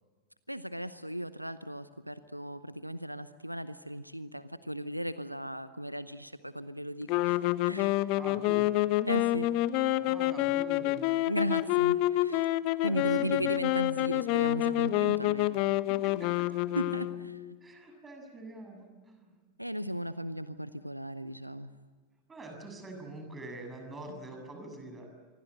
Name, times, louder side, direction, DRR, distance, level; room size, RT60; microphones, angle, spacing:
voice 1, 0.5-8.0 9.1-9.5 11.2-12.5 12.8-15.5 16.8-17.4 19.6-21.7, equal, 90° right, 14 dB, 0.8 m, -36 dB
sound 1, 7.1-17.5, left 16 dB, 45° left, 0.9 m, -28 dB
voice 2, 8.2-8.8 10.0-11.1 12.8-13.6 15.7-16.5 17.6-19.4 22.3-25.1, right 1 dB, 15° right, 4 dB, 7.4 m, -45 dB
26.5 x 23.5 x 8.0 m, 1.4 s
figure-of-eight pair, 90°, 0 cm